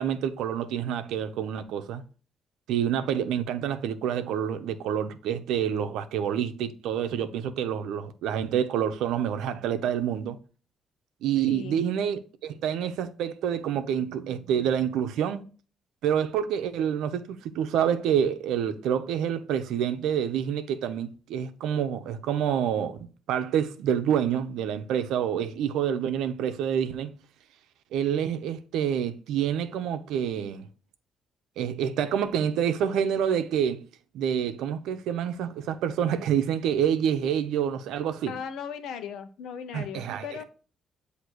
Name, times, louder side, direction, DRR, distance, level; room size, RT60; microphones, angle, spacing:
voice 1, 0.0-2.0 2.7-10.4 11.2-15.4 16.0-27.1 27.9-30.7 31.6-33.9 34.1-38.3 39.7-40.4, right 9 dB, 85° right, 0.7 m, -27 dB
voice 2, 11.4-11.8 38.3-40.4, left 7 dB, 80° left, 0.9 m, -37 dB
8.2 x 2.9 x 6.0 m
cardioid pair, 90°, 0 cm